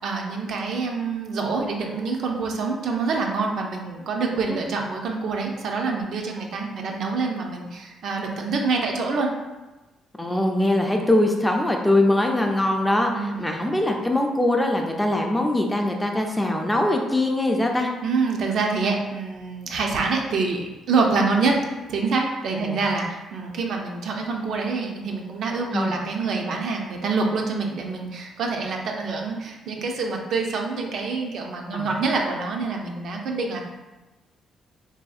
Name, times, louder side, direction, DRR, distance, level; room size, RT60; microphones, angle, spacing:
voice 1, 0.0-9.3 13.1-13.7 18.0-21.6 21.9-33.6, right 4 dB, 70° right, 1 dB, 0.4 m, -26 dB
voice 2, 10.2-17.9 22.6-22.8 25.7-26.0 31.7-31.9, left 1 dB, 10° left, 2 dB, 0.4 m, -22 dB
2.7 x 2.6 x 2.3 m, 1.1 s
cardioid pair, 90°, 0 cm